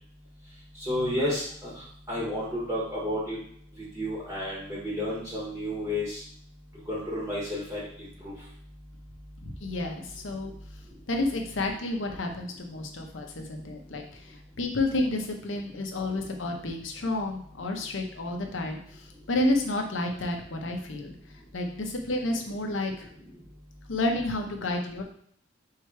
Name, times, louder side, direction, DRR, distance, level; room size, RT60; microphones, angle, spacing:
voice 1, 0.8-1.7 2.1-3.4 3.9-6.2 6.9-7.8 8.2-8.3, left 1 dB, 15° right, -7 dB, 1.1 m, -31 dB
voice 2, 9.4-10.5 11.1-21.1 21.5-23.1 23.9-25.0, left 2 dB, 75° left, 3 dB, 0.8 m, -30 dB
3.7 x 3.2 x 4.5 m, 0.63 s
head